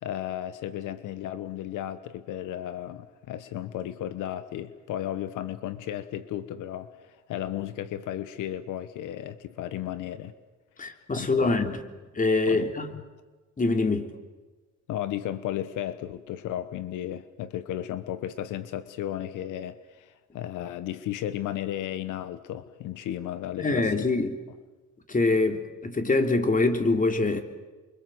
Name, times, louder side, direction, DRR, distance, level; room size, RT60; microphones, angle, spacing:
voice 1, 0.0-10.3 11.2-11.6 12.5-12.7 14.9-24.1, left 11 dB, 85° left, 13 dB, 1.2 m, -34 dB
voice 2, 10.8-11.8 12.1-12.9 13.6-14.1 23.6-24.4 25.1-27.4, left 3 dB, 25° left, 7 dB, 3.4 m, -24 dB
29.0 x 24.0 x 7.9 m, 1.2 s
cardioid pair, 90°, 30 cm